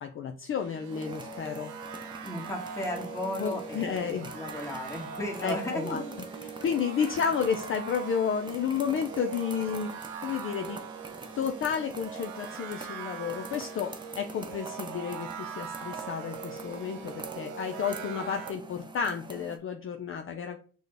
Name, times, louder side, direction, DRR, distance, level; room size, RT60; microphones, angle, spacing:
voice 1, 0.0-1.7 3.4-4.3 5.4-6.0 6.6-9.9 10.2-10.8 11.4-20.6, left 7 dB, 45° left, 5 dB, 0.5 m, -31 dB
sound 1, 0.6-18.5, right 6 dB, 85° right, 0.7 m, -42 dB
sound 2, 0.9-19.6, right 3 dB, 15° right, 0.5 m, -45 dB
voice 2, 2.2-6.1 7.0-7.1, left 1 dB, 10° left, 0 dB, 1.3 m, -35 dB
6.1 x 2.2 x 3.3 m, 0.42 s
cardioid pair, 90°, 30 cm